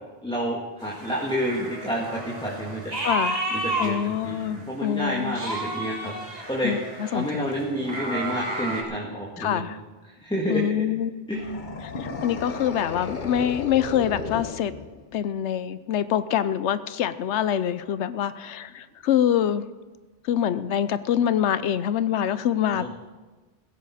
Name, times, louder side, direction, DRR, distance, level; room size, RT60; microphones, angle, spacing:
voice 1, 0.2-2.8 3.5-4.4 4.7-6.1 6.5-6.7 7.1-9.6 10.2-10.8 11.3-11.6 22.7-22.9, equal, 5° left, -3 dB, 1.7 m, -29 dB
sound 1, 0.8-4.7 5.1-8.8, right 2 dB, 35° right, 2.2 m, -32 dB
voice 2, 3.0-3.4 3.8-5.4 6.6-7.5 9.4-9.8 10.5-11.1 11.8-14.7 15.1-19.6 20.2-22.9, left 9 dB, 80° left, 14 dB, 0.9 m, -25 dB
sound 2, 11.3-15.2, left 4 dB, 45° left, 1.1 m, -35 dB
16.0 x 14.5 x 4.2 m, 1.2 s
omnidirectional pair, 1.2 m